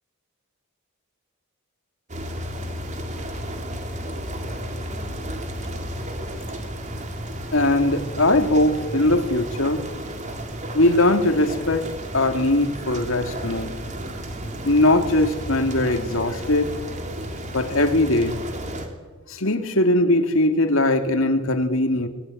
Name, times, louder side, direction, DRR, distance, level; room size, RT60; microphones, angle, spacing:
sound 1, 2.1-18.9, equal, 35° right, 3.4 m, -33 dB
voice 1, 7.5-9.8 10.7-11.9 12.1-13.8 14.6-16.7 17.5-18.4 19.3-22.1, left 1 dB, 70° left, 6 dB, 2.5 m, -20 dB
25.5 x 20.5 x 9.3 m, 1.3 s
head